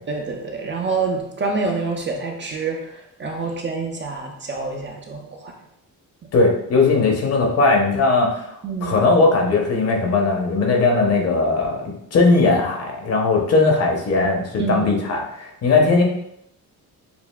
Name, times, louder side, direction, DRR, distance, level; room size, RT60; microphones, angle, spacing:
voice 1, 0.1-5.5 8.6-9.0 14.6-14.9, right 4 dB, 35° right, 1 dB, 0.5 m, -27 dB
voice 2, 6.3-8.5 8.8-11.8 12.1-16.0, left 3 dB, 45° left, 0 dB, 0.8 m, -18 dB
6.9 x 2.5 x 2.2 m, 0.77 s
wide cardioid pair, 170°, 35 cm